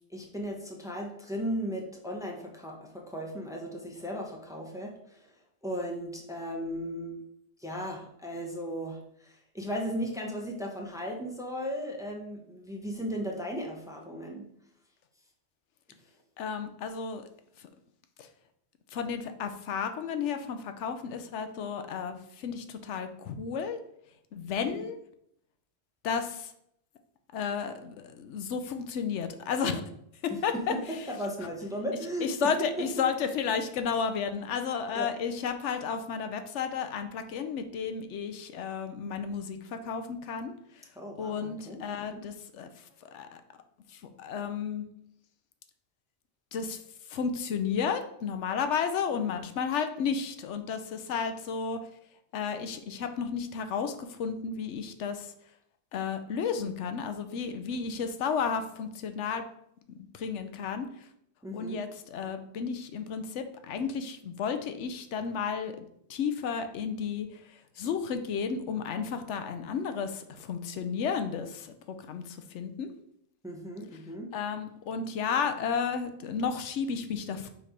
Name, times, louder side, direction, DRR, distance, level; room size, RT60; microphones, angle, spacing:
voice 1, 0.1-7.2 7.6-14.5 24.7-24.8 30.3-32.5 32.8-33.0 34.9-35.1 41.0-41.9 42.1-42.2 49.2-49.3 61.4-61.8 73.4-74.3, equal, 5° right, 0 dB, 0.8 m, -36 dB
voice 2, 16.4-17.2 17.6-17.7 18.2-18.3 18.9-23.8 24.3-25.0 26.0-26.5 27.3-29.8 30.2-31.1 32.2-40.9 41.2-43.4 43.9-44.8 46.5-46.8 47.1-51.8 52.3-55.3 55.9-59.4 60.1-61.1 61.5-72.9 74.3-77.5, left 6 dB, 85° left, 8 dB, 1.0 m, -33 dB
6.6 x 3.3 x 5.0 m, 0.73 s
omnidirectional pair, 1.2 m